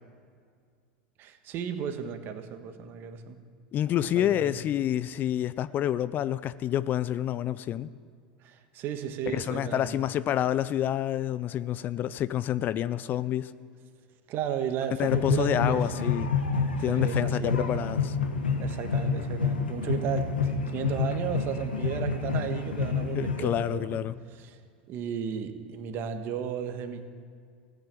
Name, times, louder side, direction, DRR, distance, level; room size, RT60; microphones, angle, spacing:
voice 1, 1.2-3.4 4.0-4.6 8.4-10.1 14.3-16.0 16.9-17.9 18.6-24.0 24.4-24.6 24.9-27.1, right 8 dB, 45° right, 1.5 m, -34 dB
voice 2, 3.7-7.9 9.3-13.5 15.0-16.3 16.8-18.2 23.1-24.1, left 11 dB, 40° left, 0.5 m, -28 dB
sound 1, 15.0-23.8, left 5 dB, 85° left, 1.5 m, -28 dB
16.0 x 9.0 x 8.5 m
figure-of-eight pair, 80°, 5 cm